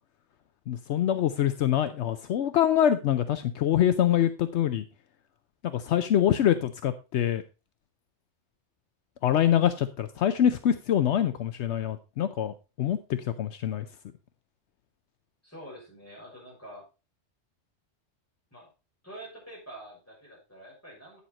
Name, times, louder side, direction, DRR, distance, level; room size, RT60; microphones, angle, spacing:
voice 1, 0.7-4.8 5.6-7.4 9.2-13.8, left 10 dB, 75° left, 10 dB, 0.9 m, -25 dB
voice 2, 15.4-16.9 18.5-18.7 19.0-21.2, right 1 dB, 15° left, -4 dB, 6.1 m, -46 dB
9.1 x 7.1 x 4.1 m, 0.30 s
omnidirectional pair, 1.2 m